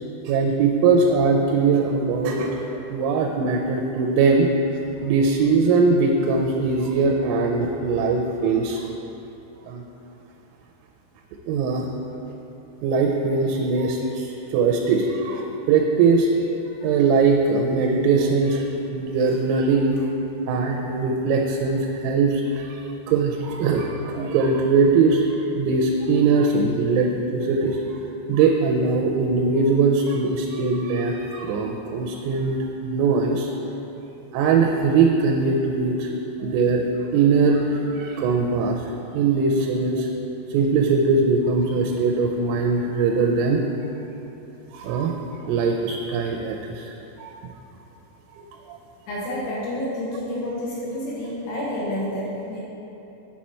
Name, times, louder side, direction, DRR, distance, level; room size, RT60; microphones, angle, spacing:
voice 1, 0.3-4.5 5.0-8.8 9.6-9.8 11.5-11.9 12.8-16.3 16.8-20.0 20.5-27.8 28.3-33.5 34.3-36.1 36.4-36.8 37.1-38.8 39.1-40.1 40.5-43.6 44.7-45.2 45.5-47.3 48.4-48.8, right 4 dB, 90° right, 1 dB, 3.3 m, -21 dB
voice 2, 49.1-52.6, left 1 dB, 75° left, -6 dB, 2.6 m, -29 dB
7.4 x 7.1 x 4.2 m, 3.0 s
omnidirectional pair, 6.0 m